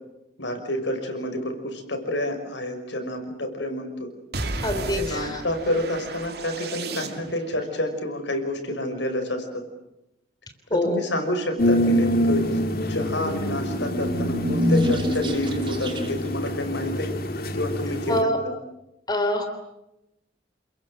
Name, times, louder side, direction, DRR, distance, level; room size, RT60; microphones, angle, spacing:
voice 1, 0.4-4.1 4.9-9.6 10.7-17.1 17.5-18.5, left 1 dB, 80° left, 5 dB, 6.0 m, -29 dB
sound 1, 4.3-7.6, right 2 dB, 60° right, 2.8 m, -33 dB
voice 2, 4.6-5.4 10.7-11.0 18.1-18.4 19.1-19.5, left 1 dB, 20° left, 7 dB, 3.2 m, -24 dB
sound 2, 11.6-18.2, equal, 55° left, 2.0 m, -25 dB
sound 3, 13.5-16.4, equal, 25° right, 3.2 m, -29 dB
29.0 x 22.0 x 7.9 m, 0.89 s
head